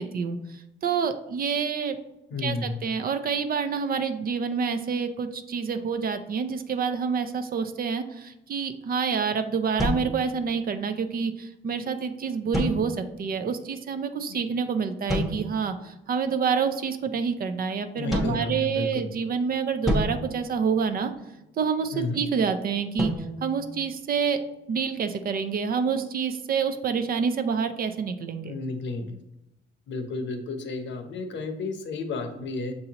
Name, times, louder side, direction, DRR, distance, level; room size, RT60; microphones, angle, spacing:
voice 1, 0.0-2.0 2.4-21.1 21.6-23.1 23.4-24.4 24.7-28.5, right 6 dB, 50° right, 9 dB, 0.5 m, -27 dB
voice 2, 2.3-2.8 14.3-14.4 17.9-19.1 21.9-22.2 28.4-29.2 29.9-32.8, left 3 dB, 65° left, 5 dB, 0.7 m, -32 dB
sound 1, 9.8-10.9 12.5-13.3 15.1-15.8 18.1-19.2 19.9-21.3 23.0-24.5, equal, ahead, 0.9 m, -31 dB
6.6 x 2.7 x 2.8 m, 0.89 s
cardioid pair, 90°, 20 cm